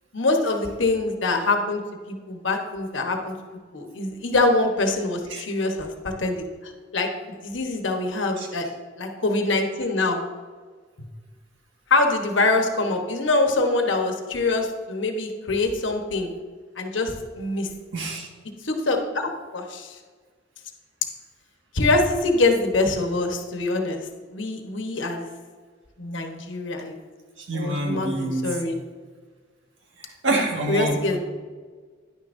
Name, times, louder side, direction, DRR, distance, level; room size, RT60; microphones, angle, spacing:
voice 1, 0.1-1.8 2.1-3.3 3.7-7.1 7.4-8.7 9.0-10.2 11.9-16.3 16.8-17.7 18.6-20.0 21.7-24.0 24.3-25.2 26.0-27.0 27.5-28.8 30.7-31.2, left 2 dB, 80° left, 4 dB, 1.1 m, -24 dB
voice 2, 17.9-18.3 27.4-28.6 30.0-31.0, right 2 dB, 80° right, 0 dB, 1.7 m, -26 dB
10.5 x 9.6 x 2.6 m, 1.5 s
head